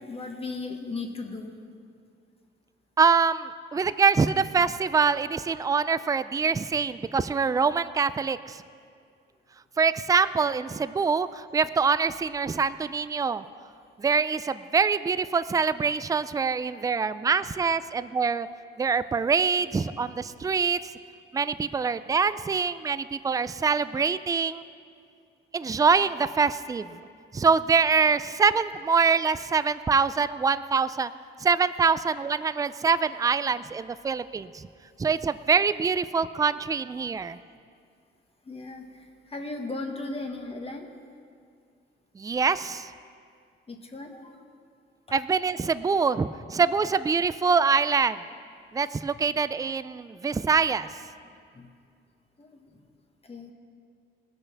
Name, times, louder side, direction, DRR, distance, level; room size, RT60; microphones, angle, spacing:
voice 1, 0.0-1.5 10.4-10.5 14.4-14.5 22.3-22.4 29.3-29.4 38.4-40.9 43.7-44.4 47.5-47.7 50.8-50.9 51.5-51.7 52.4-52.7 53.3-53.5, left 3 dB, 30° left, 3 dB, 1.4 m, -37 dB
voice 2, 3.0-8.6 9.8-13.4 14.0-18.5 18.8-20.8 21.3-24.6 25.5-26.9 27.3-31.1 31.4-34.7 35.0-37.4 42.2-42.9 45.1-48.2 48.7-50.9, right 5 dB, 15° right, 14 dB, 0.4 m, -24 dB
19.5 x 6.7 x 5.9 m, 2.3 s
cardioid pair, 90°, 20 cm